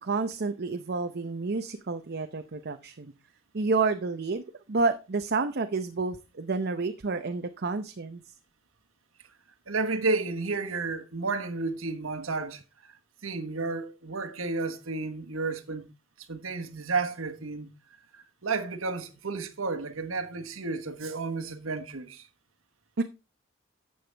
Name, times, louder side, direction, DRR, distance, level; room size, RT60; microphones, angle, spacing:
voice 1, 0.0-3.1 3.5-8.2 23.0-23.1, right 3 dB, 55° right, 0.7 m, -29 dB
voice 2, 9.7-15.9 16.3-17.7 18.1-22.3, right 3 dB, 85° right, 1.3 m, -32 dB
12.0 x 7.9 x 3.4 m
head